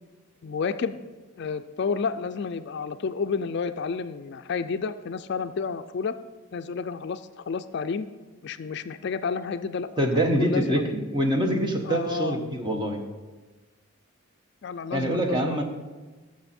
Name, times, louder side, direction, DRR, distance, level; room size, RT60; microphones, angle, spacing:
voice 1, 0.4-1.0 1.4-6.2 6.5-8.1 8.4-10.9 11.8-12.4 14.6-15.6, left 5 dB, 55° left, 11 dB, 0.4 m, -30 dB
voice 2, 10.0-13.0 14.9-15.6, right 1 dB, 20° right, 3 dB, 1.0 m, -25 dB
13.5 x 6.3 x 4.3 m, 1.3 s
head